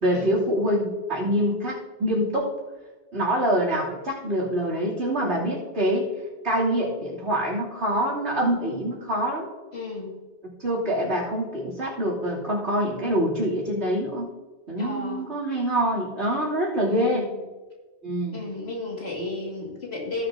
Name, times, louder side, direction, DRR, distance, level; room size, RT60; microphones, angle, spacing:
voice 1, 0.0-2.5 3.1-6.1 6.4-9.5 10.6-14.3 14.7-17.3 18.0-18.4, equal, 80° right, -6 dB, 3.3 m, -25 dB
voice 2, 9.7-10.2 14.8-15.3 16.9-17.3 18.3-20.3, left 2 dB, 70° left, -2 dB, 2.5 m, -33 dB
17.0 x 6.9 x 2.8 m, 1.2 s
omnidirectional pair, 1.1 m